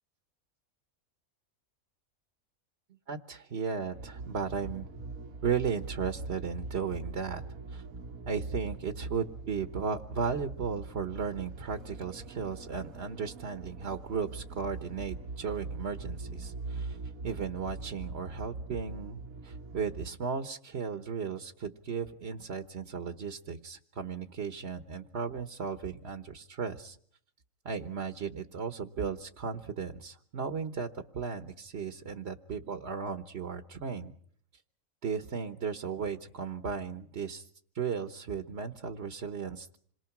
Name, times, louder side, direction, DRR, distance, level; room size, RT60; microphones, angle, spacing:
voice 1, 3.1-4.9 5.4-7.4 7.7-7.8 8.3-17.0 17.2-27.0 27.6-34.1 35.0-37.5 37.7-39.8, right 6 dB, 50° right, 7 dB, 1.3 m, -35 dB
sound 1, 3.9-20.1, right 3 dB, 80° right, 1.8 m, -42 dB
27.5 x 22.5 x 6.0 m, 0.62 s
omnidirectional pair, 1.4 m